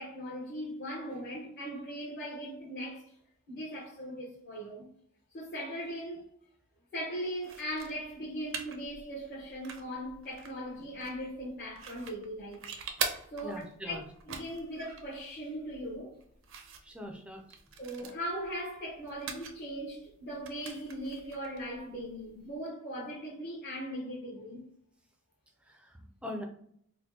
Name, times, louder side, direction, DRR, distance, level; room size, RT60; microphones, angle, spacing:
voice 1, 0.0-3.1 3.5-4.9 5.3-6.2 6.9-12.6 13.3-14.0 14.2-16.2 17.8-24.6, equal, 50° left, 0.9 m, -39 dB
sound 1, 7.4-22.6, right 6 dB, 65° right, 0.5 m, -44 dB
voice 2, 13.4-14.0 16.8-17.4 25.7-25.9 26.2-26.4, left 1 dB, 5° right, 0.4 m, -41 dB
4.3 x 2.1 x 2.7 m
head